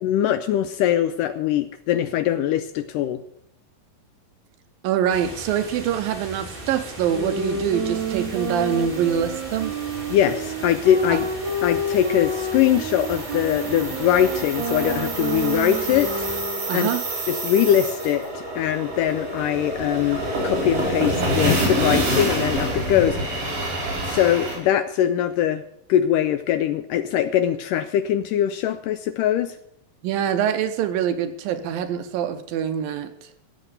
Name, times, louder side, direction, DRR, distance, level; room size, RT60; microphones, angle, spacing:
voice 1, 0.0-3.2 10.1-11.3 11.6-16.3 16.7-16.9 17.3-23.5 24.1-25.6 25.9-29.6, left 10 dB, 85° left, 11 dB, 1.9 m, -22 dB
voice 2, 4.8-9.7 11.1-11.2 16.7-17.0 30.0-33.1, right 9 dB, 80° right, 9 dB, 2.4 m, -24 dB
sound 1, 5.1-16.4, right 1 dB, 15° right, 2.8 m, -38 dB
sound 2, 7.1-16.7, right 2 dB, 40° right, 1.8 m, -29 dB
sound 3, 8.1-24.6, right 1 dB, 60° right, 6.3 m, -28 dB
15.5 x 7.8 x 8.1 m, 0.71 s
omnidirectional pair, 4.5 m